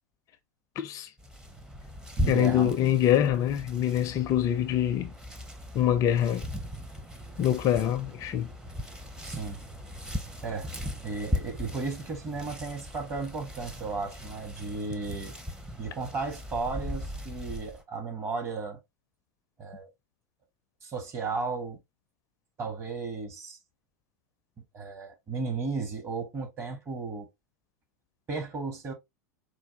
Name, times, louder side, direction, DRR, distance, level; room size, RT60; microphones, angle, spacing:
voice 1, 0.8-1.1 2.3-5.1 5.7-6.5 7.4-8.5, left 11 dB, 35° left, 0.4 m, -25 dB
sound 1, 1.2-17.8, equal, 5° right, 0.7 m, -38 dB
voice 2, 2.2-2.7 9.2-9.6 10.4-10.7 11.0-15.3 15.8-18.8 19.6-19.9 20.8-21.8 22.6-23.6 24.7-27.3 28.3-28.9, right 4 dB, 25° right, 1.1 m, -34 dB
4.4 x 2.2 x 2.8 m
figure-of-eight pair, 90°, 9 cm